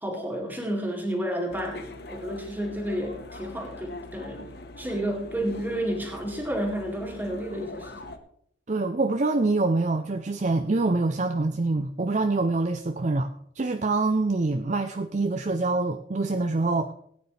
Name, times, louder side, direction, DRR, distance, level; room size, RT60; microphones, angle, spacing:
voice 1, 0.0-8.0, right 1 dB, 10° right, 1 dB, 2.2 m, -31 dB
sound 1, 1.5-8.2, left 2 dB, 55° left, 1.0 m, -42 dB
voice 2, 8.7-13.3 13.6-16.9, right 3 dB, 35° right, 7 dB, 0.5 m, -25 dB
18.0 x 9.3 x 3.3 m, 0.68 s
head